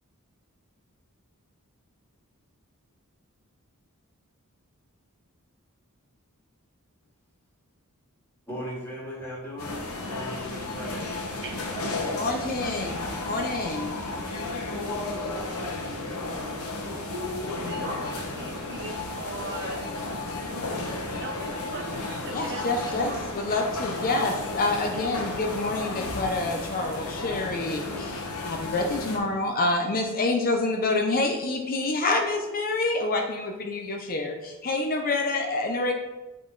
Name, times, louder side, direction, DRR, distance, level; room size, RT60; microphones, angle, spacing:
voice 1, 8.5-11.1, equal, 10° left, 2.0 m, -37 dB
sound 1, 9.6-29.2, left 2 dB, 80° left, 1.1 m, -33 dB
voice 2, 11.4-12.3 12.7-13.3 13.6-19.9 21.2-23.2, right 2 dB, 55° right, 0.9 m, -41 dB
voice 3, 12.1-12.9 13.2-13.9 22.3-35.9, left 2 dB, 40° left, 0.6 m, -27 dB
8.4 x 3.8 x 3.9 m
head